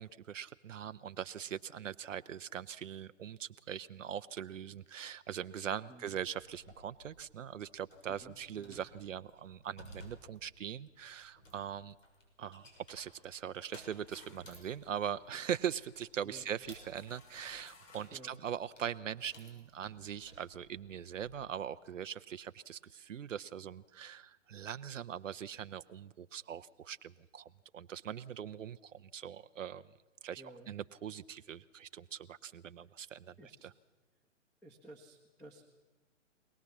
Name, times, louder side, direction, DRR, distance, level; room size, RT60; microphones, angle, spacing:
voice 1, 0.0-12.0 12.4-29.8 30.2-33.3 33.6-33.7, right 9 dB, 75° right, 12 dB, 0.7 m, -41 dB
sound 1, 6.4-21.4, left 1 dB, 75° left, 6.9 m, -59 dB
voice 2, 8.1-8.8 16.2-16.5 18.1-18.4 30.4-30.7 33.4-33.7 34.6-35.7, right 1 dB, 5° left, 4 dB, 1.5 m, -54 dB
sound 2, 13.6-18.3, left 4 dB, 30° left, 3.1 m, -62 dB
24.5 x 19.0 x 7.3 m, 1.2 s
hypercardioid pair, 130°, 38 cm